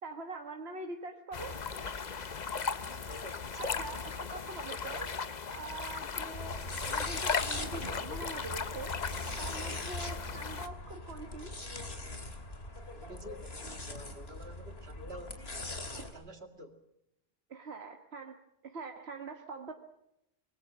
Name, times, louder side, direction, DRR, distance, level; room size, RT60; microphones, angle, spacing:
voice 1, 0.0-1.6 3.6-5.1 5.5-6.6 6.9-9.0 9.4-11.5 17.5-18.4 18.6-19.7, right 3 dB, 90° right, 4 dB, 1.7 m, -44 dB
sound 1, 1.3-10.7, left 5 dB, 45° left, 1.0 m, -37 dB
voice 2, 2.8-3.7 12.9-15.6 16.1-16.8, right 1 dB, 75° right, 6 dB, 2.6 m, -49 dB
sound 2, 6.3-16.1, left 2 dB, 80° left, 3.0 m, -41 dB
25.5 x 21.5 x 6.2 m, 0.83 s
omnidirectional pair, 1.0 m